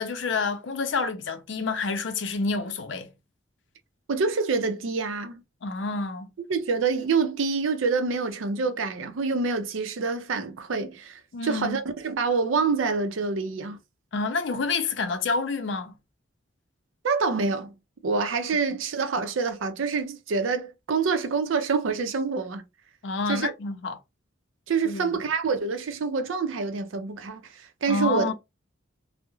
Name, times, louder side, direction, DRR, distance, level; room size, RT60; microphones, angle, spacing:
voice 1, 0.0-3.1 5.6-6.3 11.3-11.8 14.1-15.9 23.0-24.0 24.8-25.2 27.9-28.3, left 4 dB, 65° left, 0.5 m, -28 dB
voice 2, 4.1-5.4 6.5-13.8 17.0-17.7 18.0-22.6 23.3-23.5 24.7-28.3, right 4 dB, 85° right, 0.5 m, -26 dB
2.3 x 2.0 x 2.9 m
head